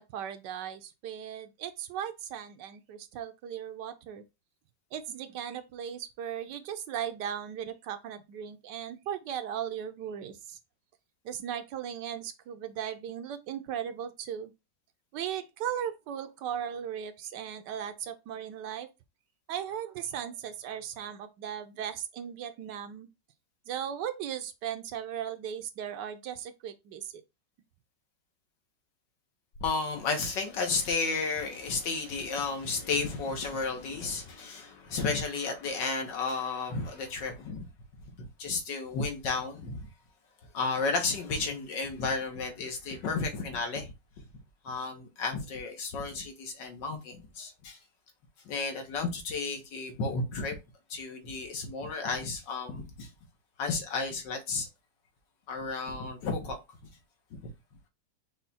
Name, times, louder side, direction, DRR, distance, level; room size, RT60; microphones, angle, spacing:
voice 1, 0.0-4.2 4.9-10.6 11.2-14.5 15.1-18.9 19.5-23.1 23.7-27.2, right 9 dB, 80° right, 1.2 m, -37 dB
voice 2, 29.6-37.7 38.2-39.9 40.5-43.9 44.6-47.8 48.5-50.6 50.9-53.1 53.6-54.7 55.5-56.6 57.3-57.5, left 4 dB, 80° left, 1.8 m, -33 dB
5.6 x 2.3 x 4.1 m
omnidirectional pair, 1.9 m